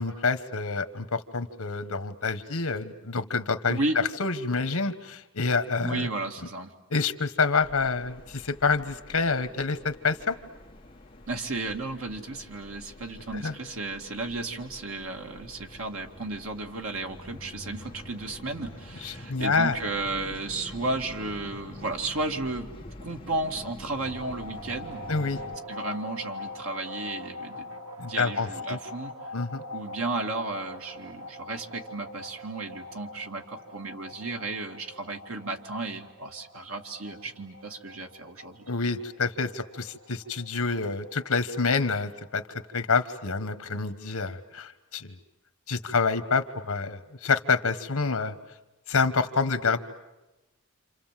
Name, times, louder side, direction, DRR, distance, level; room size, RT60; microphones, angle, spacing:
voice 1, 0.0-3.8 4.2-6.1 6.9-10.3 13.4-13.5 19.0-19.8 25.1-25.4 28.0-28.8 29.3-29.6 38.7-45.1 45.7-48.3 48.9-49.8, left 4 dB, 80° left, 11 dB, 1.3 m, -27 dB
voice 2, 5.8-6.7 11.3-22.7 23.0-25.0 25.7-27.8 28.1-29.1 29.7-38.7, right 2 dB, 75° right, 3 dB, 2.2 m, -34 dB
sound 1, 7.6-25.6, left 1 dB, 25° left, 1.5 m, -46 dB
sound 2, 24.0-42.6, left 2 dB, 90° right, 2.1 m, -43 dB
28.0 x 27.0 x 7.5 m, 1.0 s
head